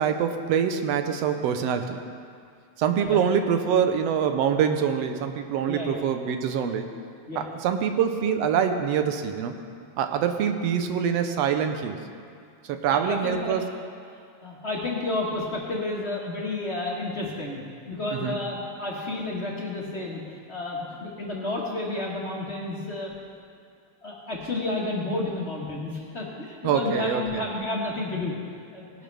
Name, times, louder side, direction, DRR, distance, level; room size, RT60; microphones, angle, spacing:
voice 1, 0.0-2.0 2.8-6.9 7.4-9.5 10.0-12.0 12.6-13.7 18.1-18.4 26.6-27.5, right 7 dB, 70° right, 7 dB, 1.7 m, -25 dB
voice 2, 5.7-6.0 7.3-7.4 12.9-13.6 14.4-17.6 17.9-23.1 24.0-28.3 28.7-28.9, left 2 dB, 30° left, -4 dB, 1.4 m, -31 dB
19.0 x 11.5 x 3.4 m, 2.3 s
omnidirectional pair, 3.3 m